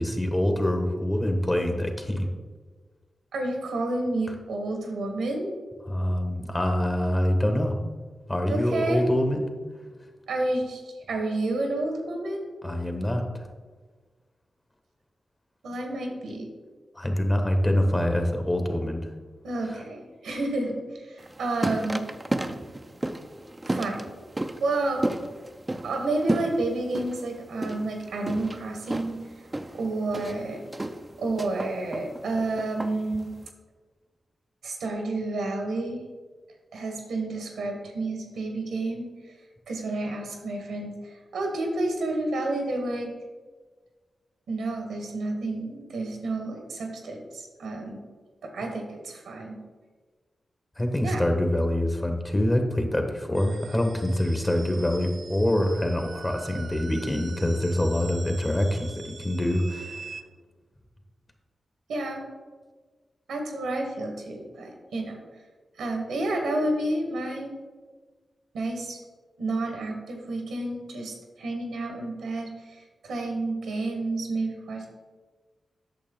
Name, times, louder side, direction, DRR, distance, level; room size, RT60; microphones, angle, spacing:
voice 1, 0.0-2.3 5.9-7.8 8.3-9.5 12.6-13.5 16.9-19.0 19.7-19.8 50.8-60.1, left 1 dB, 25° left, 4 dB, 1.5 m, -25 dB
voice 2, 3.3-5.5 8.5-9.1 10.3-12.5 15.6-16.5 19.4-22.1 23.7-24.1 24.6-25.0 25.8-29.2 29.8-30.6 31.2-33.3 34.6-36.0 36.7-39.1 39.7-43.1 44.5-48.0 48.4-49.6 51.0-51.2 61.9-62.2 63.3-65.2 65.8-67.5 68.5-69.0 69.4-74.9, right 2 dB, 85° right, 3 dB, 1.4 m, -30 dB
sound 1, 21.2-33.5, right 1 dB, 25° right, 0.6 m, -33 dB
sound 2, 53.3-60.2, right 5 dB, 65° right, 0.5 m, -44 dB
8.5 x 6.4 x 3.8 m, 1.4 s
supercardioid pair, 40°, 0 cm